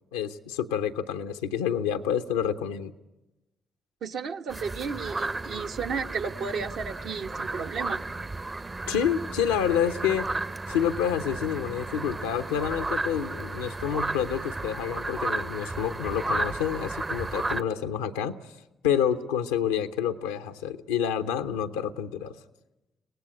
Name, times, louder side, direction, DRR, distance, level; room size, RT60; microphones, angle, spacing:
voice 1, 0.1-2.9 8.9-10.3 10.7-18.4 18.8-22.4, left 8 dB, 90° left, 9 dB, 0.7 m, -28 dB
voice 2, 4.0-8.0, right 5 dB, 70° right, 4 dB, 1.1 m, -33 dB
sound 1, 4.5-17.6, right 2 dB, 30° right, 0.8 m, -33 dB
24.0 x 18.0 x 8.0 m, 0.99 s
hypercardioid pair, 45°, 0 cm